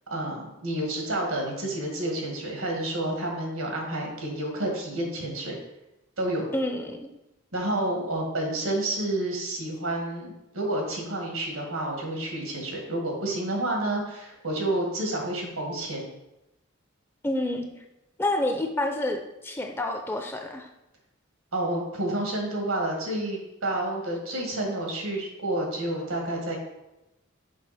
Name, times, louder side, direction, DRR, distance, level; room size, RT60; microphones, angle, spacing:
voice 1, 0.1-5.6 6.2-6.5 7.5-16.1 21.5-26.6, right 1 dB, 85° right, 0 dB, 1.8 m, -29 dB
voice 2, 6.5-7.1 17.2-17.7 18.2-20.7, left 1 dB, 10° left, 4 dB, 0.5 m, -28 dB
6.2 x 5.1 x 4.2 m, 0.94 s
head